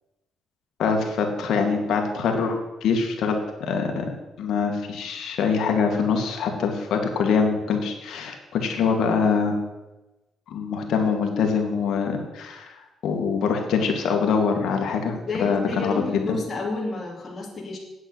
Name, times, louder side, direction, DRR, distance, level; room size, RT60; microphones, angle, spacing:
voice 1, 0.8-4.1 4.4-9.6 10.5-12.8 13.0-15.1 15.4-16.4, left 5 dB, 75° left, 3 dB, 2.3 m, -24 dB
voice 2, 15.1-17.8, left 2 dB, 35° left, -2 dB, 2.9 m, -31 dB
8.9 x 8.0 x 8.2 m, 1.0 s
cardioid pair, 90°, 0 cm